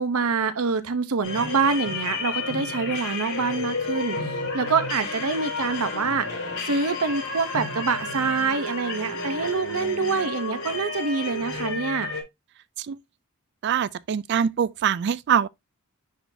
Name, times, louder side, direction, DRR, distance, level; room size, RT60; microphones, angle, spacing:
voice 1, 0.0-6.3 6.6-12.1, right 4 dB, 75° right, 0.7 m, -26 dB
sound 1, 1.2-12.2, left 3 dB, 70° left, 4.5 m, -31 dB
voice 2, 13.6-15.5, right 8 dB, 50° right, 0.3 m, -23 dB
10.0 x 3.8 x 2.6 m
head